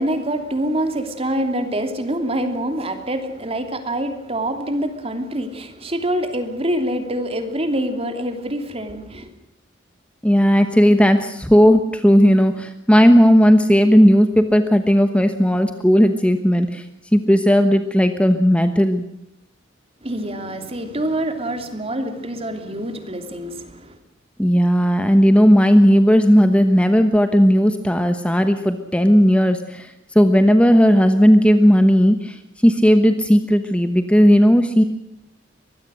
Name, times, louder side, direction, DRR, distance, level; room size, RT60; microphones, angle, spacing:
voice 1, 0.0-9.3 20.0-24.0, right 1 dB, 30° right, 7 dB, 3.0 m, -25 dB
voice 2, 10.2-16.8 17.1-19.0 24.4-34.8, equal, 5° left, 8 dB, 1.1 m, -15 dB
24.0 x 20.5 x 6.4 m, 0.84 s
head